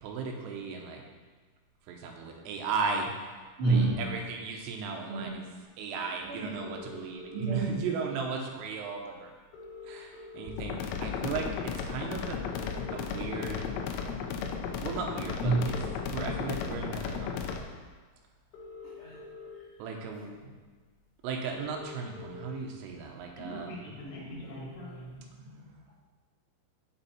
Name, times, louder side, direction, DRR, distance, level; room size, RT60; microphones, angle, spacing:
voice 1, 0.0-1.0 1.9-3.3 3.7-5.4 5.8-9.3 9.9-12.4 12.9-13.7 14.8-15.8 16.1-17.4 19.8-20.5 21.2-23.9, right 5 dB, 85° right, 2 dB, 3.6 m, -36 dB
voice 2, 3.6-4.0 5.1-5.3 6.2-6.6 7.3-7.9 14.2-14.6 15.4-15.7 18.8-19.2 23.4-25.6, right 3 dB, 60° right, -9 dB, 1.3 m, -32 dB
sound 1, 6.5-7.6 8.7-8.8 9.1-9.2 9.4-10.8 11.3-11.5 12.4-13.5 14.2-14.5 15.4-16.5 17.8-17.9 18.4-19.5 20.2-20.3 20.6-20.7 20.9-21.0 21.2-22.5 22.9-25.0, left 3 dB, 55° left, 2.3 m, -46 dB
sound 2, 10.6-17.6, left 6 dB, 85° left, 3.3 m, -35 dB
8.1 x 8.1 x 4.3 m, 1.4 s
omnidirectional pair, 5.7 m